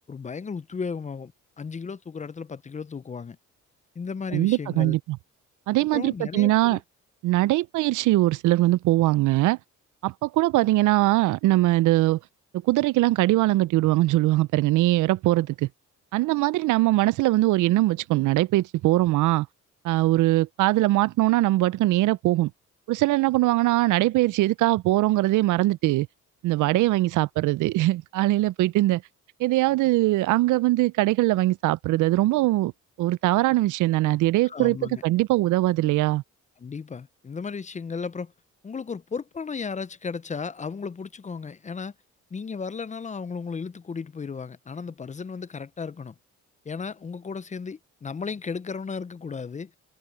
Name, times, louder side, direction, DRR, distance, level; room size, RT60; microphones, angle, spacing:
voice 1, 0.1-1.3 1.6-3.4 4.0-5.0 5.8-6.8 34.5-35.0 36.6-38.3 38.6-41.9 42.3-46.1 46.7-49.7, left 5 dB, 25° left, 0.5 m, -34 dB
voice 2, 4.3-5.2 5.7-6.8 7.2-9.6 10.0-12.2 12.6-15.7 16.1-19.5 19.8-22.5 22.9-26.1 26.4-29.0 29.4-32.7 33.0-34.8 35.0-36.2, right 17 dB, 80° right, 0.5 m, -21 dB
cardioid pair, 90°, 30 cm